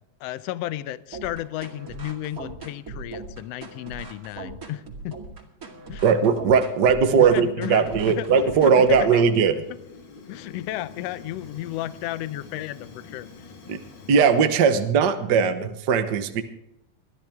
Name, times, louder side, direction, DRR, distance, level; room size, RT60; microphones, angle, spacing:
voice 1, 0.2-5.2 5.9-6.0 7.2-8.4 8.6-9.2 10.3-13.3 15.3-15.7, left 14 dB, 80° left, 14 dB, 1.5 m, -33 dB
sound 1, 1.1-9.1, right 3 dB, 30° right, 2.3 m, -39 dB
voice 2, 6.0-9.5 13.7-13.8 14.1-16.4, right 6 dB, 70° right, 8 dB, 1.0 m, -19 dB
Fire, 7.8-14.4, left 4 dB, 45° left, 2.1 m, -44 dB
22.0 x 13.5 x 3.6 m, 0.83 s
omnidirectional pair, 3.6 m